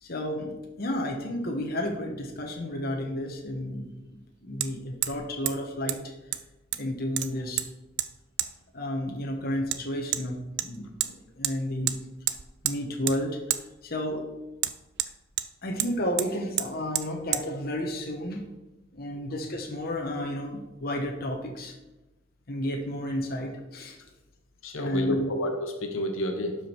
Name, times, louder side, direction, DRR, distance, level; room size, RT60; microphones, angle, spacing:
voice 1, 0.0-3.9 4.4-6.1 6.8-7.7 8.7-12.0 12.6-14.2 15.6-18.4 18.9-21.7 22.5-24.0 24.7-25.3, left 1 dB, 45° left, 1 dB, 1.2 m, -32 dB
Hammer, 2.7-2.8 4.6-4.7 5.0-5.2 5.5-5.6 5.9-6.0 6.3-6.9 7.2-7.7 8.0-8.1 8.4-8.5 9.7-9.8 10.1-10.2 10.6-11.1 11.4-11.6 11.9-12.0 12.3-12.8 13.1-13.2 13.5-13.6 14.6-15.5 15.8-15.9 16.2-16.3 16.6-16.7 16.9-17.1 17.3-17.4, right 13 dB, 55° right, 0.5 m, -29 dB
voice 2, 24.6-26.6, left 1 dB, 75° left, 4 dB, 1.4 m, -30 dB
12.0 x 5.1 x 4.5 m, 1.0 s
head